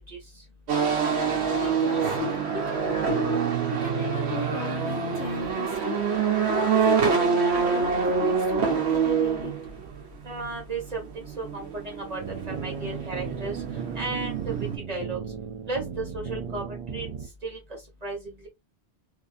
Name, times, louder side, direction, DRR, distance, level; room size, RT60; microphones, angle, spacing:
sound 1, 0.7-14.8, right 6 dB, 80° right, 1.2 m, -26 dB
voice 1, 1.5-3.4 3.7-6.1 6.5-9.6, left 5 dB, 60° left, 0.7 m, -35 dB
voice 2, 10.2-12.2 12.5-13.6 14.0-14.5 14.9-15.2 15.7-16.6 16.9-17.1 17.4-17.6 18.0-18.2, right 3 dB, 40° right, 1.3 m, -33 dB
sound 2, 12.2-17.3, right 6 dB, 60° right, 0.3 m, -36 dB
3.6 x 2.7 x 2.4 m
omnidirectional pair, 1.1 m